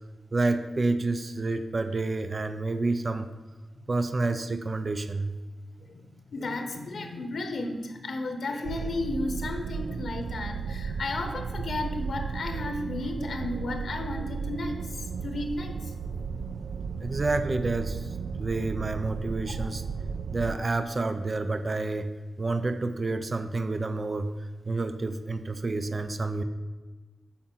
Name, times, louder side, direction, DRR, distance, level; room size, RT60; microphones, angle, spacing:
voice 1, 0.3-3.3 3.9-5.4 17.0-19.8 20.3-22.1 22.4-26.4, right 3 dB, 30° right, 9 dB, 0.6 m, -29 dB
voice 2, 5.8-15.9 19.6-19.7, left 2 dB, 65° left, 6 dB, 1.1 m, -34 dB
sound 1, 8.6-20.6, right 5 dB, 85° right, 0.4 m, -34 dB
8.5 x 5.6 x 7.7 m, 1.3 s
wide cardioid pair, 135°, 0 cm